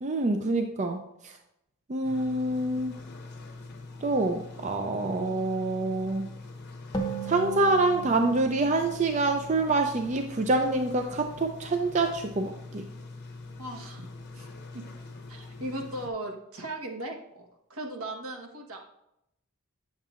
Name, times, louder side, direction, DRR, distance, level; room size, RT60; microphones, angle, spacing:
voice 1, 0.0-1.3 1.9-2.9 4.0-6.3 7.2-12.9, right 2 dB, 35° right, 5 dB, 0.4 m, -26 dB
sound 1, 2.0-16.1, left 3 dB, 50° left, 0.9 m, -44 dB
sound 2, 6.9-10.4, right 4 dB, 20° left, 0.8 m, -38 dB
voice 2, 13.6-14.1 14.3-14.5 14.7-14.9 15.3-18.8, right 1 dB, 75° right, 2 dB, 1.3 m, -37 dB
9.0 x 7.3 x 2.5 m, 0.81 s
head